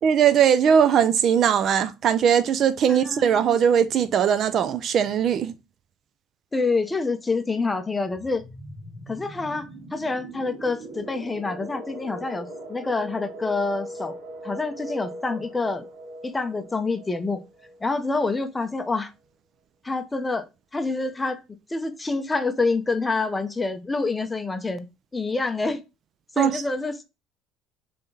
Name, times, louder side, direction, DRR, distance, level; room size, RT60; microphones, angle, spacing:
voice 1, 0.0-5.5 26.4-26.6, right 8 dB, 50° right, 0.4 m, -20 dB
voice 2, 2.9-3.6 6.5-8.4 9.1-14.2 14.4-15.8 16.2-17.4 17.8-19.1 19.8-20.5 20.7-21.4 21.7-24.9 25.1-25.8 26.4-27.0, left 3 dB, 15° left, 0.6 m, -27 dB
sound 1, 8.1-18.6, right 1 dB, 75° right, 1.8 m, -40 dB
3.6 x 3.4 x 4.0 m
cardioid pair, 115°, 0 cm